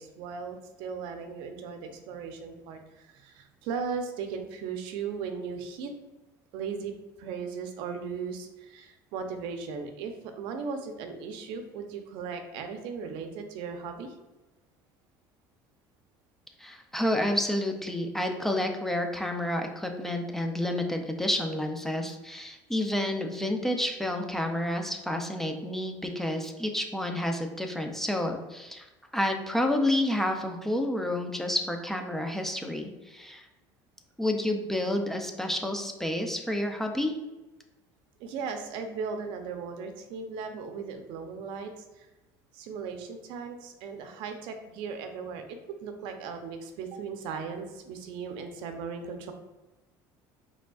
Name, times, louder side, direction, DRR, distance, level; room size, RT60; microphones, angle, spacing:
voice 1, 0.0-5.9 6.5-6.9 7.2-14.1 38.2-42.1 42.5-49.3, right 5 dB, 75° right, 6 dB, 0.6 m, -37 dB
voice 2, 16.6-28.9 29.1-33.5 34.2-37.1, left 1 dB, 5° left, 3 dB, 0.5 m, -29 dB
5.0 x 3.5 x 2.3 m, 1.1 s
cardioid pair, 125°, 8 cm